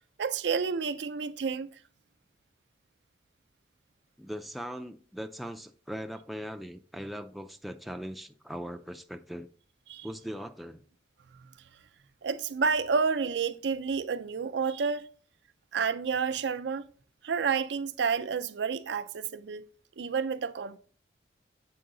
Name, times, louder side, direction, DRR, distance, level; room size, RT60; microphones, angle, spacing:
voice 1, 0.2-1.7 9.9-10.1 12.2-15.1 15.7-16.8 17.2-19.7 20.0-20.8, right 5 dB, 90° right, 0.5 m, -30 dB
voice 2, 4.2-9.5 10.0-10.8, equal, ahead, 0.3 m, -40 dB
7.7 x 4.7 x 3.7 m
head